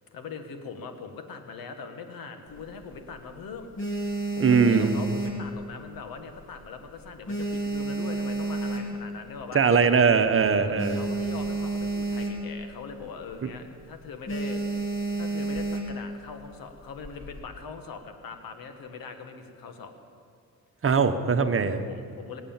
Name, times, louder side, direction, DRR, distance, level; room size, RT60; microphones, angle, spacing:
voice 1, 0.1-3.7 4.3-9.6 10.5-14.6 15.2-19.9 21.4-22.4, left 5 dB, 80° left, 7 dB, 1.7 m, -41 dB
sound 1, 2.5-3.2 3.6-6.1 6.4-6.7 7.0-9.3 9.7-9.8 10.0-10.1 10.5-12.7 13.0-13.2 13.6-13.8 14.3-16.1 16.8-17.4, right 3 dB, 35° left, 2.9 m, -30 dB
voice 2, 4.4-4.9 9.5-11.0 13.4-13.5 20.8-21.8, right 5 dB, 40° right, 8 dB, 1.2 m, -21 dB
23.5 x 8.4 x 7.3 m, 2.5 s
cardioid pair, 85°, 34 cm